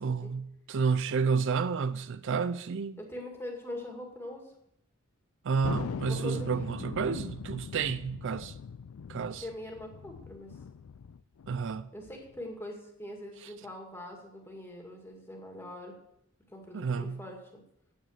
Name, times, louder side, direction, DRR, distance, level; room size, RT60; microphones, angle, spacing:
voice 1, 0.0-3.0 5.4-8.5 9.1-9.4 11.5-11.9 16.7-17.2, right 5 dB, 60° right, 0.4 m, -30 dB
voice 2, 3.0-4.5 6.0-6.7 9.3-10.6 11.9-16.0 16.5-17.6, left 1 dB, 10° left, 2.1 m, -42 dB
Thunder, 5.6-12.5, left 6 dB, 75° left, 0.4 m, -41 dB
9.1 x 9.0 x 6.5 m
head